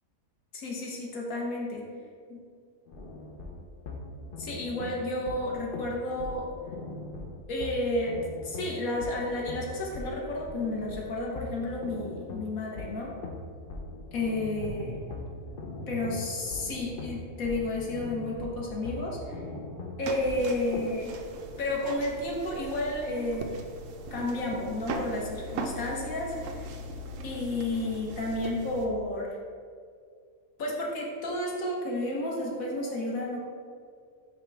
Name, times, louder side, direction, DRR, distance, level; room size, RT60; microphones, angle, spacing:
voice 1, 0.5-1.8 2.3-2.4 4.4-6.5 7.5-13.1 14.1-14.9 15.9-19.4 20.0-21.1 21.6-23.5 24.1-26.7 27.2-29.4 30.6-33.4, left 1 dB, 85° left, -3 dB, 1.5 m, -31 dB
sound 1, 2.9-20.9, left 3 dB, 50° left, 0.8 m, -41 dB
sound 2, 14.1-20.2, right 1 dB, 90° right, 1.3 m, -44 dB
sound 3, 20.0-28.9, right 2 dB, 70° right, 1.0 m, -39 dB
5.8 x 5.2 x 3.4 m, 2.1 s
omnidirectional pair, 1.4 m